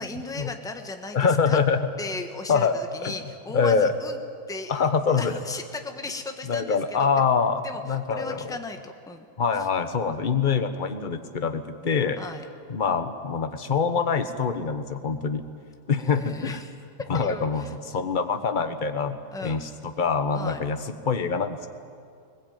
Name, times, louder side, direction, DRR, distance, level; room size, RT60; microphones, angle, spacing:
voice 1, 0.0-1.6 2.0-4.2 4.5-4.8 5.1-7.3 7.6-9.3 12.2-12.5 16.0-16.7 17.1-17.7 19.3-19.7 20.3-20.6, left 3 dB, ahead, 5 dB, 1.1 m, -36 dB
voice 2, 1.1-1.8 2.5-3.1 3.5-3.9 4.7-5.4 6.5-8.6 9.4-12.2 12.7-15.4 15.9-16.6 17.1-21.7, left 5 dB, 30° left, 8 dB, 1.2 m, -25 dB
21.0 x 20.0 x 9.2 m, 2.3 s
omnidirectional pair, 1.8 m